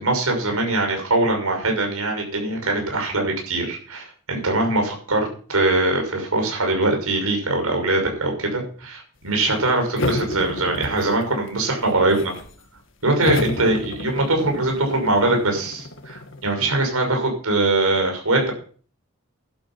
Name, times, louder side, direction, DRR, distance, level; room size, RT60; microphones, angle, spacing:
voice 1, 0.0-12.3 13.0-18.5, right 2 dB, 90° right, 2 dB, 6.2 m, -22 dB
sound 1, 10.0-11.5 11.8-12.6 13.2-16.5, left 2 dB, 60° left, 1.7 m, -30 dB
12.0 x 12.0 x 5.8 m, 0.42 s
head